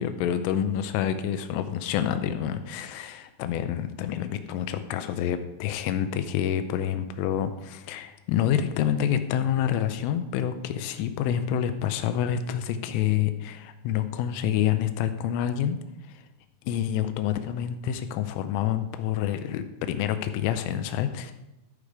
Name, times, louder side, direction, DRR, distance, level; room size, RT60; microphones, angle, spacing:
voice 1, 0.0-15.8 16.1-16.2 16.7-21.3, left 10 dB, 85° left, 9 dB, 3.1 m, -27 dB
13.5 x 4.9 x 4.8 m, 0.96 s
omnidirectional pair, 5.7 m